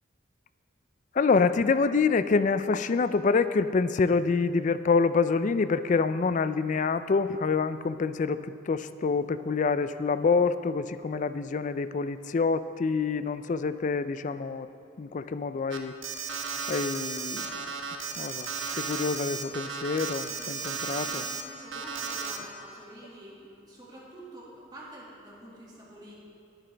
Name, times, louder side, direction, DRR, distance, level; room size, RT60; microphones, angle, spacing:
voice 1, 1.1-14.7 15.0-15.9 16.7-17.7 18.2-18.5 18.8-21.2, left 4 dB, 40° left, 13 dB, 0.3 m, -26 dB
Alarm, 15.7-21.4 21.7-22.4, right 5 dB, 75° right, 1.0 m, -34 dB
voice 2, 20.0-26.1, right 1 dB, 20° right, -6 dB, 2.0 m, -48 dB
20.5 x 9.0 x 3.4 m, 2.5 s
head